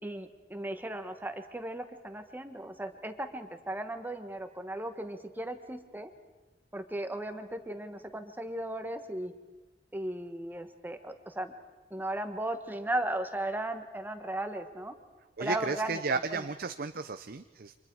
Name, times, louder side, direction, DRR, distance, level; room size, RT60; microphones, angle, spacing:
voice 1, 0.0-6.1 6.7-9.3 9.9-11.5 11.9-14.9 15.4-16.5, right 1 dB, 10° right, 7 dB, 1.4 m, -36 dB
voice 2, 15.4-17.7, right 4 dB, 60° right, 9 dB, 0.7 m, -34 dB
30.0 x 26.0 x 4.7 m, 1.2 s
head